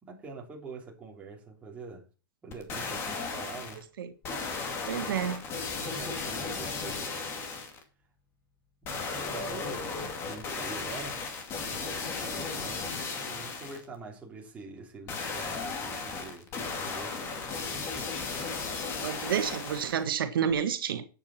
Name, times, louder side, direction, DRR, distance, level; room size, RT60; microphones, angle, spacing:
voice 1, 0.0-2.0 2.4-3.8 5.8-7.5 8.8-9.9 10.3-11.2 11.7-17.5, right 4 dB, 10° right, 3.2 m, -45 dB
sound 1, 2.5-3.8 4.2-7.8 8.8-13.8 15.1-20.0 20.5-20.6, left 4 dB, 20° left, 2.2 m, -35 dB
voice 2, 4.9-5.4 19.0-21.0, right 8 dB, 80° right, 1.7 m, -29 dB
11.5 x 8.8 x 4.4 m
supercardioid pair, 160°, 12 cm